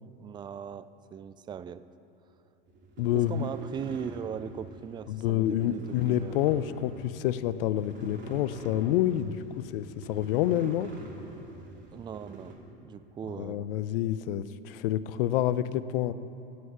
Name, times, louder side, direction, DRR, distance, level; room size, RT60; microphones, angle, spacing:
voice 1, 0.0-1.9 3.1-6.4 11.9-13.7, right 7 dB, 15° right, 14 dB, 0.3 m, -39 dB
sound 1, 2.7-12.5, right 3 dB, 35° right, 2.4 m, -45 dB
voice 2, 3.0-3.5 5.1-10.9 13.4-16.1, left 12 dB, 70° left, 15 dB, 0.6 m, -28 dB
16.0 x 8.5 x 5.7 m, 2.9 s
hypercardioid pair, 100°, 30 cm